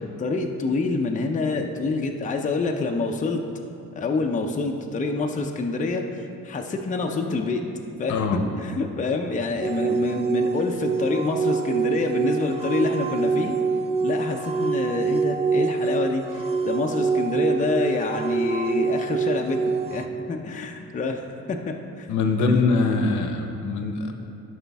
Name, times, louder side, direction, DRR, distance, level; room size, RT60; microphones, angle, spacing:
voice 1, 0.0-3.4 3.9-7.6 8.0-8.1 8.5-13.6 14.0-21.2 21.5-22.1 22.4-22.6, left 3 dB, 25° left, 3 dB, 0.6 m, -27 dB
voice 2, 8.1-8.4 22.1-24.1, left 3 dB, 70° left, 4 dB, 0.9 m, -23 dB
sound 1, 9.6-20.1, right 5 dB, 20° right, 0.4 m, -25 dB
11.5 x 5.1 x 3.5 m, 2.7 s
cardioid pair, 90°, 30 cm